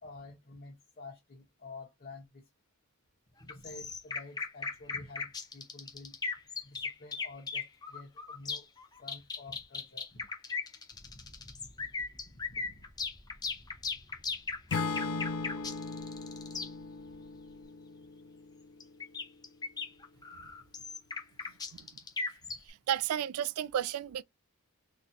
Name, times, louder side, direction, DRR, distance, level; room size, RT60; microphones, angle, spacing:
voice 1, 0.0-2.4 3.4-6.2 6.6-8.7 9.0-10.3 12.3-12.9 21.4-21.6, left 3 dB, 45° left, 1.0 m, -50 dB
sound 1, 3.5-16.7 18.8-22.7, left 4 dB, 20° left, 0.6 m, -37 dB
sound 2, 10.9-17.6, equal, 5° right, 1.0 m, -58 dB
Acoustic guitar / Strum, 14.7-18.9, left 4 dB, 80° left, 0.4 m, -38 dB
voice 2, 22.7-24.2, right 10 dB, 80° right, 0.3 m, -33 dB
4.0 x 2.8 x 2.6 m
head